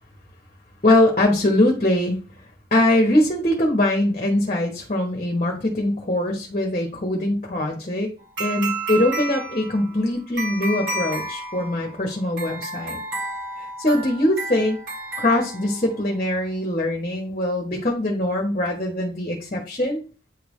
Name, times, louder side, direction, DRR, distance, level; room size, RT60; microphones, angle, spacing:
voice 1, 0.8-2.2 2.7-8.1 8.4-13.0 13.8-14.8 15.2-20.0, left 1 dB, 35° left, 1 dB, 1.1 m, -22 dB
sound 1, 8.4-16.1, right 2 dB, 85° right, 2.4 m, -31 dB
9.1 x 3.4 x 3.2 m, 0.36 s
head